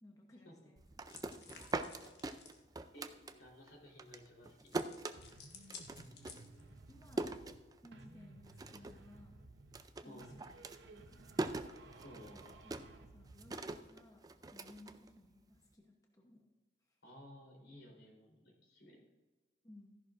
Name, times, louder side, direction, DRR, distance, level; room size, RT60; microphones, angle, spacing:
voice 1, 0.0-1.6 6.0-7.3 7.8-9.4 10.0-11.2 12.6-16.5 16.8-17.0 19.6-20.0, left 1 dB, 20° left, 0 dB, 0.9 m, -60 dB
sound 1, 0.8-3.7 4.0-8.1 8.4-9.1 9.3-15.6, right 2 dB, 20° right, 0.4 m, -43 dB
sound 2, 1.1-2.6 4.7-6.8, left 5 dB, 60° left, 1.3 m, -55 dB
voice 2, 2.9-4.7 10.0-10.3 12.0-12.5 17.0-19.0, equal, 80° left, -2 dB, 3.7 m, -56 dB
sound 3, 5.2-7.6 7.9-9.9 10.2-13.6, right 2 dB, 70° right, 0.9 m, -57 dB
14.0 x 11.0 x 2.5 m, 1.2 s
head